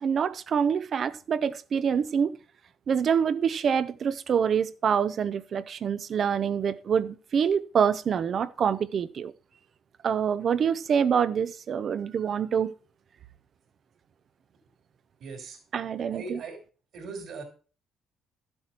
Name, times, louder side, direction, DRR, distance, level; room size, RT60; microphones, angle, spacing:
voice 1, 0.0-2.3 2.9-9.3 10.0-12.7 15.7-16.4, right 7 dB, 45° right, 0.7 m, -26 dB
voice 2, 15.2-15.6 16.1-16.6 16.9-17.4, right 4 dB, 65° right, 3.8 m, -38 dB
12.5 x 7.9 x 4.4 m
cardioid pair, 115°, 0 cm